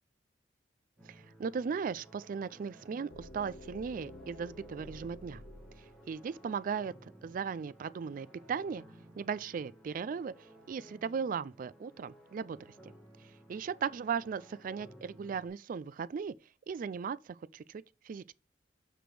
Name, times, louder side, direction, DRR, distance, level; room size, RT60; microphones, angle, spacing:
sound 1, 1.0-15.5, right 1 dB, ahead, 1.9 m, -57 dB
voice 1, 1.0-5.4 6.1-8.8 9.2-12.9 13.5-16.3 16.7-18.3, right 6 dB, 50° right, 0.3 m, -37 dB
sound 2, 3.1-7.0, left 1 dB, 75° left, 2.0 m, -51 dB
6.0 x 5.0 x 4.8 m
head